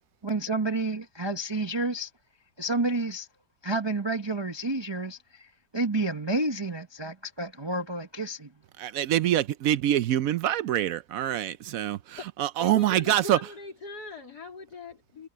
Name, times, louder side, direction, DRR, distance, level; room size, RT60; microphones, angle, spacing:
voice 1, 0.2-2.1 2.6-3.3 3.6-8.5, right 2 dB, 20° right, 0.8 m, -30 dB
voice 2, 8.8-13.4, right 12 dB, 70° right, 0.9 m, -25 dB
voice 3, 12.6-15.3, left 2 dB, 70° left, 3.9 m, -41 dB
omnidirectional pair, 1.8 m